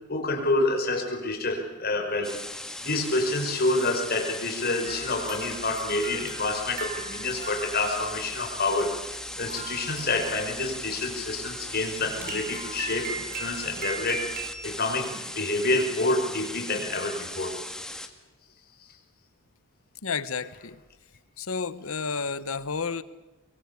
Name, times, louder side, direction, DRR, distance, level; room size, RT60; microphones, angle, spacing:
voice 1, 0.1-17.6, left 2 dB, 45° left, 3 dB, 5.2 m, -28 dB
sound 1, 2.2-18.1, left 1 dB, 5° left, 1.7 m, -38 dB
sound 2, 4.8-14.8, right 4 dB, 40° right, 4.0 m, -40 dB
voice 2, 20.0-20.8 21.4-23.0, left 5 dB, 75° left, 15 dB, 1.1 m, -31 dB
24.5 x 23.0 x 8.4 m, 1.1 s
head